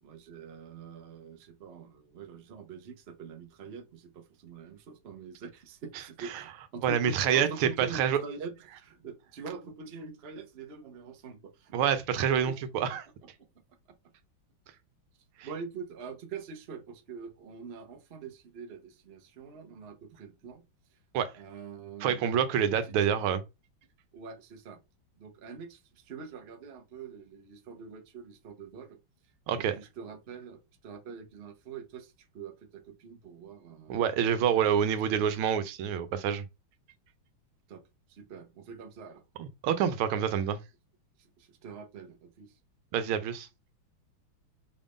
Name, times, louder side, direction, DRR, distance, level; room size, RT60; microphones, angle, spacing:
voice 1, 0.0-11.7 12.7-12.8 15.4-20.6 20.9-21.0 21.3-22.2 23.1-23.2 24.1-24.8 25.2-29.0 29.6-34.7 35.1-35.3 37.7-37.8 38.1-39.2 41.2-42.6, right 5 dB, 55° right, 0.6 m, -45 dB
voice 2, 6.8-8.2 11.7-13.0 21.1-21.3 22.0-23.4 29.5-29.7 33.9-36.4 39.4-40.6 42.9-43.5, right 8 dB, 85° right, 1.6 m, -27 dB
5.3 x 2.5 x 3.5 m
omnidirectional pair, 2.3 m